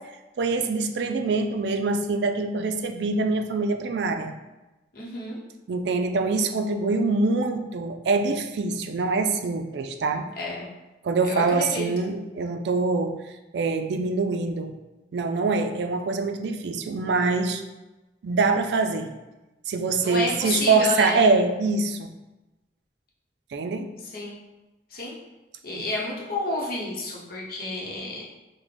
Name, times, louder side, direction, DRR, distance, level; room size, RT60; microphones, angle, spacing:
voice 1, 0.4-4.3 5.7-10.3 11.0-13.2 13.5-14.7 15.1-17.6 18.2-19.1 19.7-22.1 23.5-23.9, right 3 dB, 70° right, 6 dB, 0.4 m, -24 dB
voice 2, 4.9-5.4 10.4-10.7 11.2-11.9 20.0-21.2 24.0-24.4 24.9-25.1 25.6-28.2, left 2 dB, 55° left, -4 dB, 0.8 m, -30 dB
5.0 x 2.1 x 3.3 m, 1.1 s
head